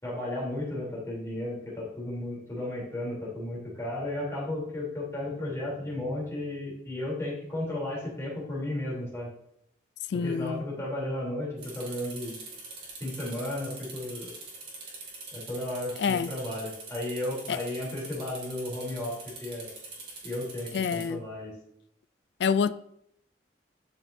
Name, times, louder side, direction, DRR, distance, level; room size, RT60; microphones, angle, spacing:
voice 1, 0.0-9.3 10.1-12.4 13.0-14.3 15.3-19.1 19.4-19.7 20.2-21.5, left 1 dB, 15° left, 3.2 m, -34 dB
voice 2, 10.1-10.6 16.0-16.3 17.5-17.6 20.7-21.2 22.4-22.7, left 6 dB, 65° left, 0.3 m, -27 dB
sound 1, 11.6-21.1, right 3 dB, 30° right, 2.3 m, -44 dB
12.0 x 5.4 x 2.7 m
head